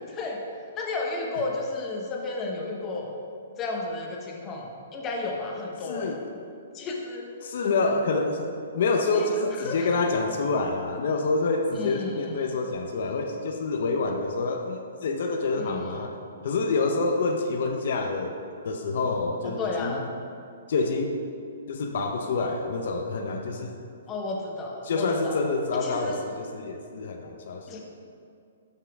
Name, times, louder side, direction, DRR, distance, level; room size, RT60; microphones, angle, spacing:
voice 1, 0.7-3.1 3.6-4.7 4.9-6.2 6.7-7.3 9.1-10.0 11.7-12.4 15.6-16.0 19.4-20.0 24.1-25.4 25.8-26.2 27.7-27.8, left 3 dB, 20° left, -1 dB, 1.0 m, -33 dB
voice 2, 5.8-6.2 7.4-8.5 8.7-16.2 16.4-18.4 18.6-20.0 20.7-21.1 21.7-23.7 24.8-27.8, left 3 dB, 60° left, 4 dB, 0.7 m, -27 dB
12.0 x 5.7 x 3.5 m, 2.5 s
hypercardioid pair, 160°, 0 cm